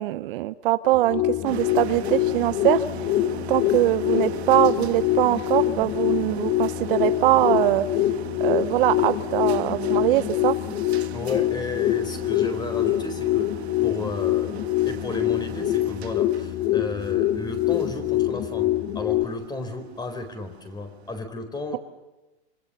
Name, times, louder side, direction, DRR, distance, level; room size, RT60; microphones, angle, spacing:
voice 1, 0.0-2.8 3.5-7.8 8.4-10.5, right 15 dB, 55° right, 12 dB, 1.0 m, -22 dB
sound 1, 0.9-19.2, left 14 dB, 35° left, 1.3 m, -25 dB
sound 2, 1.4-21.2, right 11 dB, 80° right, 1.7 m, -41 dB
voice 2, 11.1-13.5 13.8-18.7 18.9-21.8, left 2 dB, 15° left, 7 dB, 4.3 m, -33 dB
27.0 x 25.5 x 6.9 m, 1.0 s
hypercardioid pair, 135°, 32 cm